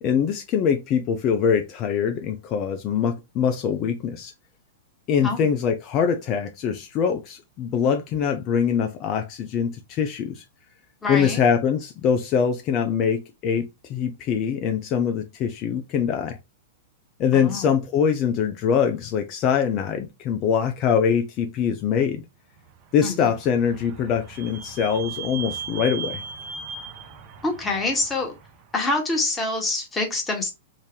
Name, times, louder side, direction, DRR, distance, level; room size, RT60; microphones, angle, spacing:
voice 1, 0.0-4.3 5.1-10.4 11.1-16.4 17.2-22.2 22.9-26.2, left 7 dB, 40° left, 0.5 m, -23 dB
voice 2, 11.0-11.4 17.3-17.7 23.0-23.3 27.4-28.3 28.7-30.5, left 2 dB, 15° left, 1.4 m, -26 dB
Vehicle / Squeak, 22.9-28.5, right 6 dB, 45° right, 0.9 m, -37 dB
3.8 x 2.7 x 3.0 m
hypercardioid pair, 105°, 0 cm